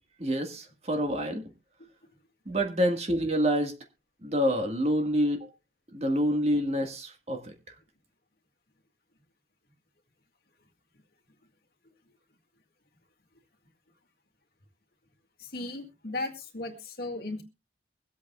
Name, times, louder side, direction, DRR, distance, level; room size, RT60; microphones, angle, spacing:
voice 1, 0.2-1.4 2.5-3.7 4.2-5.5 5.9-7.7, equal, 35° right, 4 dB, 1.8 m, -27 dB
voice 2, 15.4-17.4, left 2 dB, 55° left, 4 dB, 2.2 m, -36 dB
23.5 x 8.5 x 2.4 m, 0.27 s
head